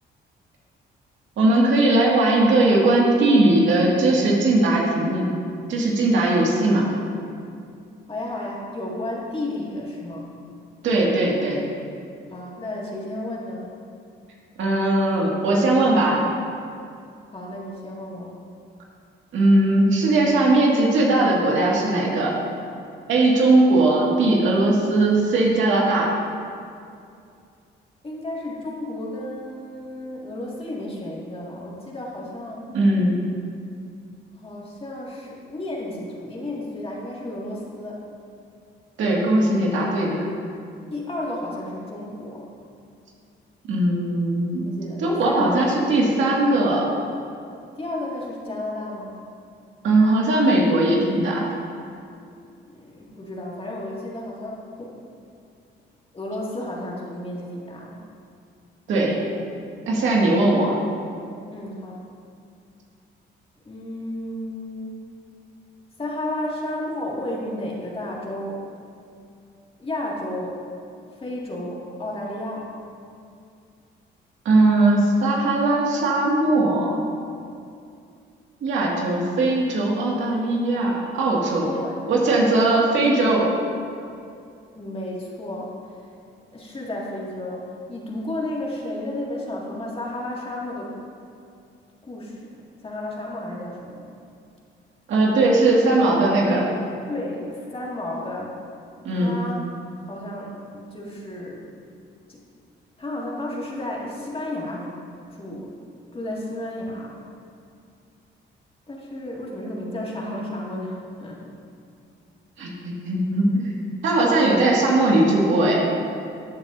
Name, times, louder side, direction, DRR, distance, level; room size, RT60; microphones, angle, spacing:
voice 1, 1.4-5.3 5.7-6.9 10.8-11.6 14.6-16.2 19.3-22.3 23.1-26.1 32.7-33.2 39.0-40.3 43.7-44.7 45.0-46.9 49.8-51.4 58.9-59.2 59.9-60.8 74.5-77.0 78.6-81.7 82.1-83.5 95.1-96.7 99.0-99.4 112.6-113.6 114.0-115.8, right 2 dB, 75° right, -3 dB, 2.1 m, -19 dB
voice 2, 8.1-10.3 12.3-13.7 17.3-18.3 28.0-32.6 34.3-38.0 40.9-42.5 44.7-45.8 47.7-49.2 52.7-55.0 56.1-58.0 61.5-62.0 63.7-65.0 66.0-68.6 69.8-70.6 71.2-72.7 81.5-82.0 84.8-85.7 86.5-91.0 92.1-92.4 92.8-94.1 97.1-98.6 99.1-99.7 100.0-101.6 102.3-102.4 103.0-104.9 105.3-105.7 106.1-107.2 108.9-111.4, left 1 dB, 30° left, -4 dB, 2.2 m, -32 dB
14.0 x 8.8 x 2.7 m, 2.4 s
cardioid pair, 90°, 20 cm